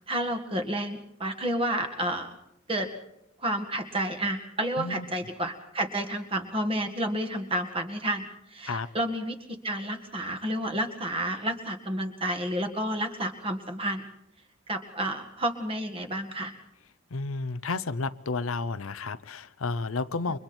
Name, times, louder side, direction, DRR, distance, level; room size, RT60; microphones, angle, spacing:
voice 1, 0.1-2.3 2.7-2.9 3.4-9.4 9.6-14.1 14.7-16.5, right 1 dB, 25° right, 6 dB, 1.9 m, -30 dB
voice 2, 17.1-20.4, left 3 dB, 85° left, 14 dB, 0.8 m, -31 dB
29.0 x 24.0 x 4.5 m, 0.83 s
head